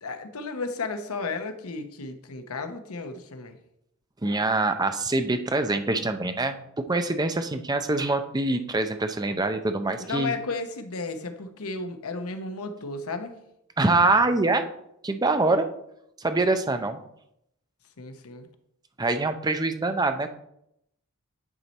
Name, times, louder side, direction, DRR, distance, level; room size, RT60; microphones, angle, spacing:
voice 1, 0.0-3.6 10.0-13.4 18.0-18.5, left 3 dB, 80° left, 7 dB, 0.9 m, -33 dB
voice 2, 4.2-6.6 6.9-10.3 13.8-14.7 15.0-15.7 16.2-17.0 19.0-20.3, right 2 dB, 20° right, 8 dB, 0.5 m, -24 dB
9.9 x 4.5 x 4.1 m, 0.77 s
head